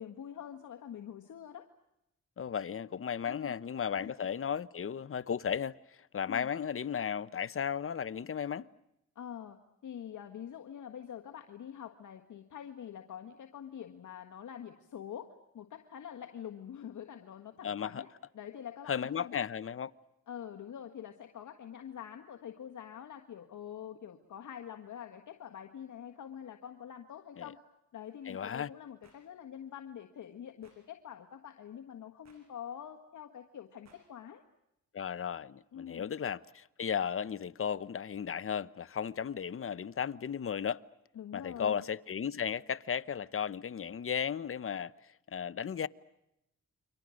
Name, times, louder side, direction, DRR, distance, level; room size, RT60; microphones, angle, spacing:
voice 1, 0.0-1.7 3.3-3.5 3.9-4.1 6.2-6.5 9.1-9.6 9.8-18.1 18.3-19.4 20.3-27.6 27.9-34.4 35.7-36.1 41.1-41.8, left 9 dB, 70° left, 1.6 m, -45 dB
voice 2, 2.4-5.8 6.1-8.7 17.6-18.0 18.9-19.9 27.4-27.5 28.3-28.7 34.9-40.8 41.3-44.9 45.3-45.9, left 7 dB, 45° left, 0.9 m, -35 dB
sound 1, 29.0-29.2 30.6-30.8 32.2-32.4 33.8-34.0, right 4 dB, 60° right, 6.4 m, -62 dB
29.5 x 24.5 x 6.4 m
cardioid pair, 75°, 31 cm